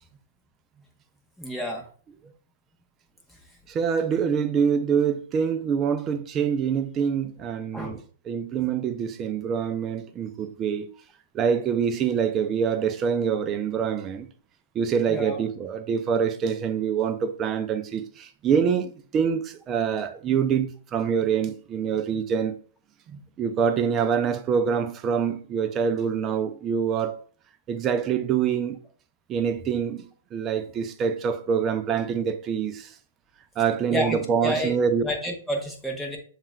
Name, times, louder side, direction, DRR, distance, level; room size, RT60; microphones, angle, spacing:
voice 1, 1.4-1.9 3.3-3.4 7.7-8.0 15.1-15.4 33.9-34.7 35.0-36.2, equal, ahead, 0.9 m, -29 dB
voice 2, 3.7-8.0 8.3-10.9 11.3-14.3 14.7-22.5 23.1-27.2 27.7-28.8 29.3-32.9 33.6-35.0, right 7 dB, 25° right, 0.4 m, -25 dB
7.2 x 2.4 x 2.2 m
hypercardioid pair, 115°, 0 cm